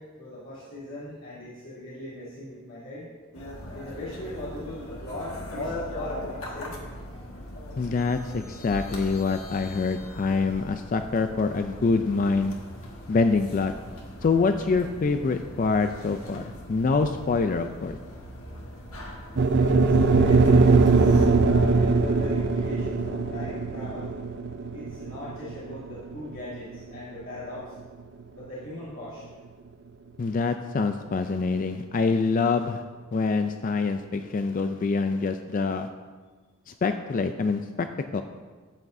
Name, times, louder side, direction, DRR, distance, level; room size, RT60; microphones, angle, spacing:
voice 1, 0.0-3.1 3.7-6.8 19.5-24.2 24.7-27.7 28.3-29.2, left 1 dB, 70° left, -11 dB, 3.0 m, -39 dB
sound 1, 3.3-21.3, left 1 dB, 90° left, 1.6 m, -40 dB
voice 2, 7.8-12.6 13.1-13.7 14.2-18.0 30.2-32.8 33.1-35.9 36.7-37.9 38.1-38.2, left 4 dB, 40° left, 8 dB, 0.3 m, -25 dB
sound 2, 19.4-27.6, right 4 dB, 55° right, 0.5 m, -21 dB
13.5 x 8.4 x 2.6 m, 1.4 s
head